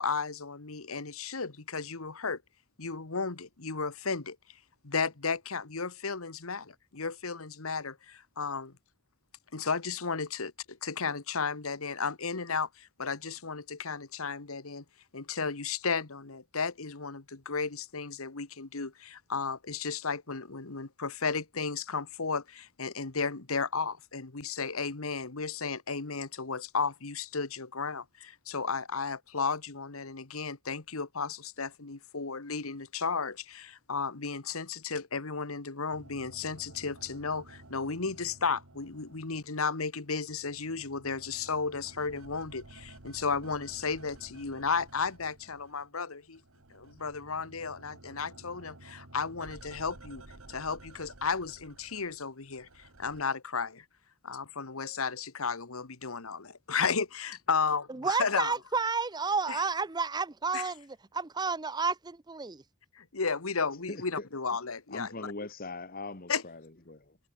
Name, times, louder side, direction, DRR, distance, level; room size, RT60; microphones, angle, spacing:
voice 1, 0.0-2.4 2.8-4.4 4.8-8.7 9.5-10.5 10.8-14.8 15.1-46.4 46.7-50.2 50.5-53.8 54.2-58.5 59.5-59.6 60.5-60.7 63.0-65.3 66.3-66.4, left 5 dB, 85° left, 1.6 m, -34 dB
sound 1, 35.9-39.7 40.0-46.0 46.2-53.2, right 2 dB, 80° right, 2.7 m, -53 dB
voice 2, 57.9-62.6, right 4 dB, 20° right, 0.6 m, -31 dB
voice 3, 63.9-64.3 64.9-67.2, left 2 dB, 45° left, 1.8 m, -41 dB
head